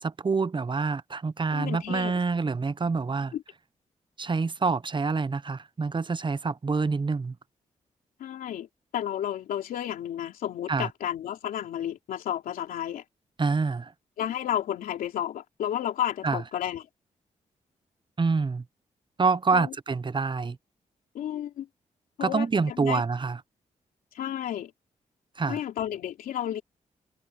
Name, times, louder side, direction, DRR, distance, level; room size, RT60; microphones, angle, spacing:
voice 1, 0.0-3.3 4.2-7.3 10.7-10.9 13.4-13.9 16.2-16.4 18.2-18.6 19.2-20.6 22.2-23.4 25.4-25.6, right 4 dB, 35° right, 0.8 m, -26 dB
voice 2, 1.5-2.2 3.3-3.4 8.2-8.7 8.9-13.0 14.2-16.9 19.5-19.7 21.1-21.7 22.2-23.0 24.1-24.7 25.5-26.6, left 10 dB, 90° left, 3.2 m, -32 dB
supercardioid pair, 55°, 14 cm